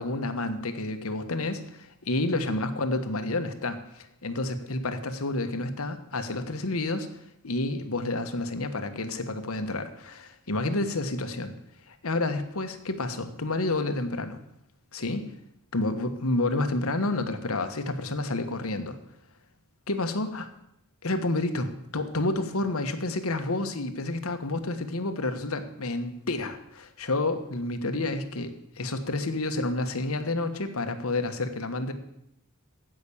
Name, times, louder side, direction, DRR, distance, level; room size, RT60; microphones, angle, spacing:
voice 1, 0.0-11.5 11.9-14.4 14.9-15.3 15.7-19.0 19.9-20.5 21.0-31.9, left 2 dB, 75° left, 8 dB, 1.3 m, -30 dB
15.5 x 6.1 x 8.6 m, 0.81 s
head